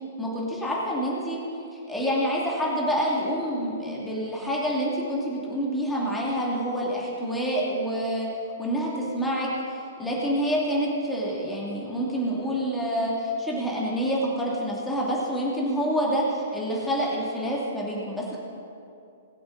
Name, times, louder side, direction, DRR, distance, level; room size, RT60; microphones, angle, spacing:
voice 1, 0.2-1.4 1.9-8.3 8.6-18.4, equal, 5° left, -5 dB, 2.6 m, -27 dB
20.5 x 7.8 x 4.1 m, 2.6 s
figure-of-eight pair, 115°, 0 cm